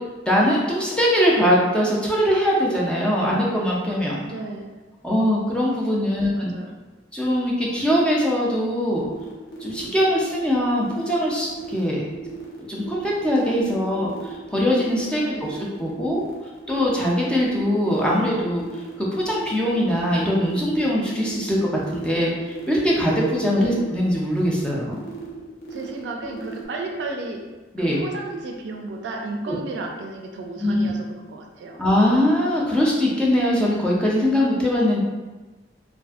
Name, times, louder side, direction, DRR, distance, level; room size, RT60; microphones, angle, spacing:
voice 1, 0.3-4.2 5.0-6.5 7.1-9.0 9.6-12.0 12.7-14.1 14.5-15.2 15.5-16.2 16.7-18.6 19.0-21.6 21.9-25.0 27.7-28.0 29.5-29.6 30.6-30.9 31.8-35.0, equal, 5° left, -4 dB, 0.4 m, -21 dB
voice 2, 4.2-4.7 6.1-6.8 15.0-15.6 23.5-23.8 25.7-27.4 27.8-31.8, right 2 dB, 75° right, 2 dB, 0.4 m, -33 dB
sound 1, 8.9-26.6, right 4 dB, 60° left, 0.6 m, -37 dB
2.5 x 2.5 x 2.3 m, 1.2 s
head